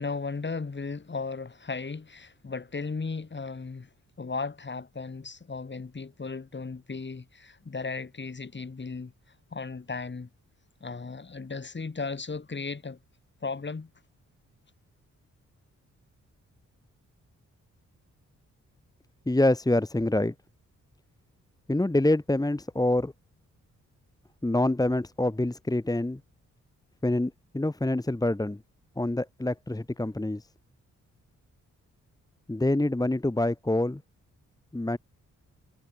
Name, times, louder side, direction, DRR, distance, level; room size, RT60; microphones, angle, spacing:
voice 1, 0.0-3.9 4.2-9.1 9.5-10.3 10.8-13.0 13.4-13.9, left 4 dB, 35° left, 5.8 m, -35 dB
voice 2, 19.3-20.3 21.7-23.1 24.4-26.2 27.0-28.6 29.0-30.5 32.5-34.0 34.7-35.0, left 1 dB, 10° left, 2.1 m, -26 dB
cardioid pair, 75°, 31 cm